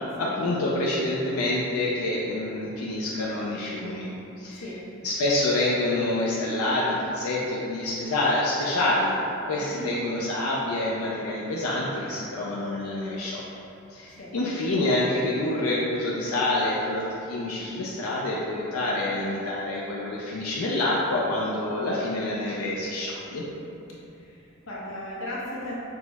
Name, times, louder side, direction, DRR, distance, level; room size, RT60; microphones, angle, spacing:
voice 1, 0.2-4.6 5.0-9.1 9.5-13.4 13.9-23.4, left 1 dB, 90° left, -5 dB, 0.5 m, -27 dB
voice 2, 4.5-4.8 9.6-9.9 14.1-14.3 24.1-25.7, left 1 dB, 65° left, -6 dB, 0.9 m, -37 dB
5.9 x 2.0 x 3.4 m, 2.9 s
head